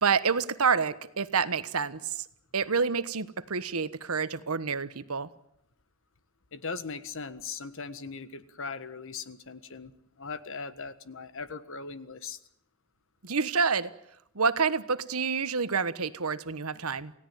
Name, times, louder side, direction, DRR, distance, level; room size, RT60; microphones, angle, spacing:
voice 1, 0.0-2.2 2.5-5.3 13.2-13.9 14.3-17.1, right 5 dB, 85° right, 14 dB, 1.3 m, -28 dB
voice 2, 6.5-12.4, left 4 dB, 65° left, 13 dB, 1.6 m, -39 dB
29.0 x 17.0 x 9.1 m, 0.77 s
head